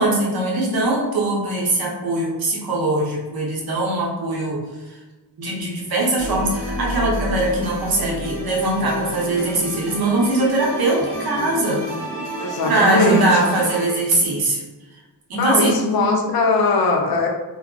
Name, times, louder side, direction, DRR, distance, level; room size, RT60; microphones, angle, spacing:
voice 1, 0.0-4.6 4.9-5.0 5.4-11.8 12.6-14.6 15.3-15.8, right 2 dB, 60° right, -2 dB, 0.7 m, -21 dB
sound 1, 6.2-13.9, equal, 20° right, 0.9 m, -30 dB
voice 2, 12.4-13.4 15.3-17.3, left 3 dB, 60° left, 1 dB, 0.5 m, -20 dB
2.3 x 2.1 x 3.6 m, 1.1 s
wide cardioid pair, 180°, 41 cm